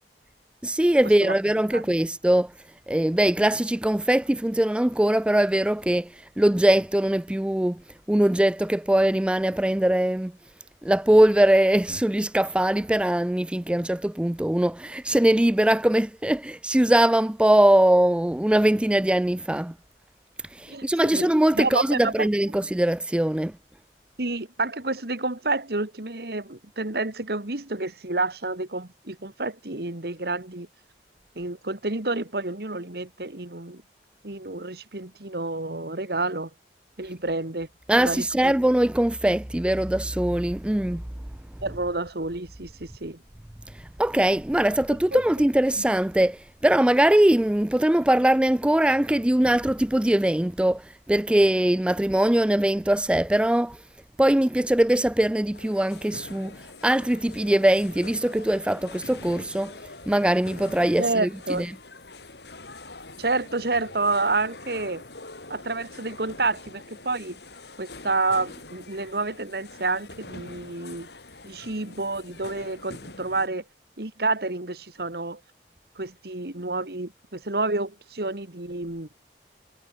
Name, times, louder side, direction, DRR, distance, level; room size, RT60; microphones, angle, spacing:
voice 1, 0.6-2.5 2.9-7.8 8.1-10.3 10.8-19.7 20.5-23.5 37.9-41.0 44.0-53.8 54.2-56.6 56.8-59.7 60.1-61.7, right 1 dB, 5° right, 0.3 m, -21 dB
voice 2, 20.7-21.3 21.5-22.3 24.2-30.7 31.4-33.8 34.2-36.5 37.0-37.7 38.0-38.5 41.6-43.2 45.1-45.2 45.8-45.9 61.0-61.7 63.2-65.0 65.5-67.4 67.8-71.1 71.4-73.6 74.0-75.4 76.0-79.1, right 3 dB, 60° right, 2.0 m, -29 dB
sound 1, 55.5-73.5, left 2 dB, 70° left, 5.5 m, -44 dB
head